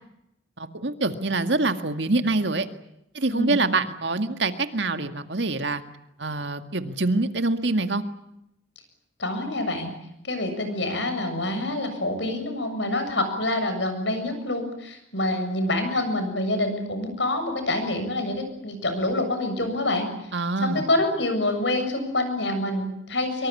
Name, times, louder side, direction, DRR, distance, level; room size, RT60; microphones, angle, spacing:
voice 1, 0.6-2.7 3.1-5.8 6.2-8.0 20.3-20.8, right 2 dB, 65° right, 8 dB, 2.0 m, -25 dB
voice 2, 3.3-3.6 9.2-9.9 10.2-20.1 20.6-23.5, left 1 dB, 70° left, 7 dB, 7.3 m, -26 dB
24.5 x 23.5 x 8.6 m, 0.81 s
head